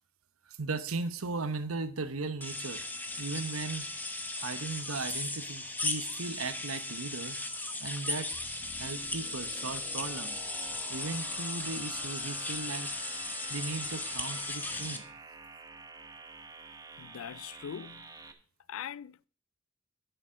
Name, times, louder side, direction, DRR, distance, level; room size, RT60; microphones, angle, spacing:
voice 1, 0.5-2.8 3.2-3.9 4.4-7.4 7.8-8.3 8.8-10.4 10.9-12.9 13.5-15.0, right 3 dB, 85° right, 1.0 m, -37 dB
sound 1, 2.4-15.0, left 2 dB, 10° left, 1.1 m, -37 dB
sound 2, 8.3-18.3, right 3 dB, 15° right, 0.9 m, -50 dB
voice 2, 17.0-18.1 18.7-19.3, left 8 dB, 70° left, 0.4 m, -42 dB
11.5 x 7.0 x 5.1 m
head